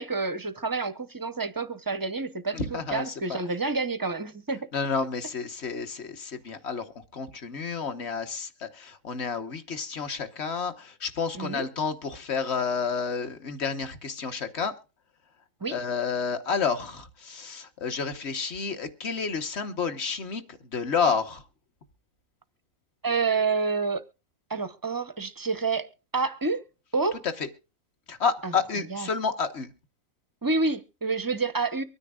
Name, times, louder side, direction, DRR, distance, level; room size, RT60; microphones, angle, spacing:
voice 1, 0.0-4.7 11.4-11.7 15.6-15.8 23.0-24.0 24.5-26.6 26.9-27.2 28.4-28.5 28.9-29.1 30.4-31.8, right 4 dB, 25° right, 0.4 m, -28 dB
voice 2, 2.5-3.4 4.7-6.8 7.1-14.7 15.7-21.4 28.1-29.7, left 5 dB, 50° left, 1.4 m, -30 dB
24.0 x 9.8 x 2.4 m
omnidirectional pair, 1.6 m